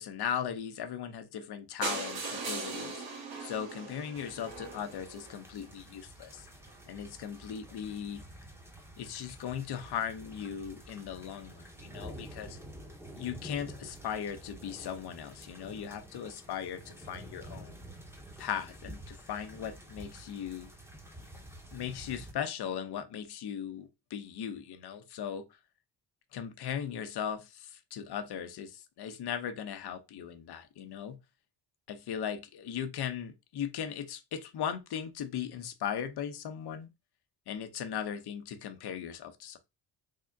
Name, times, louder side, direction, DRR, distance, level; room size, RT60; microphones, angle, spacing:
voice 1, 0.0-6.5 6.9-8.2 9.0-12.6 13.2-17.8 18.4-20.7 21.7-25.4 26.3-31.2 31.9-36.9 37.5-39.6, left 8 dB, 60° left, 0.8 m, -38 dB
sound 1, 1.8-5.7 6.3-6.4 6.7-6.8 7.1-7.2 7.3-7.4, right 3 dB, 80° right, 2.0 m, -39 dB
sound 2, 4.2-22.3, right 1 dB, 5° right, 0.9 m, -49 dB
3.6 x 2.1 x 3.7 m
supercardioid pair, 65°, 44 cm